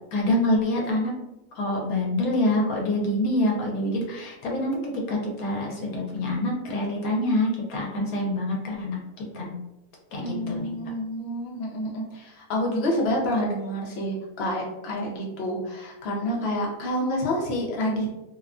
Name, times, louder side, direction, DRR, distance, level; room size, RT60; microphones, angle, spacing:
voice 1, 0.1-1.1 1.5-9.6 10.1-10.7, left 1 dB, 85° left, -1 dB, 1.1 m, -26 dB
voice 2, 10.2-18.1, equal, 55° left, -2 dB, 0.8 m, -28 dB
2.8 x 2.2 x 2.4 m, 0.97 s
omnidirectional pair, 1.5 m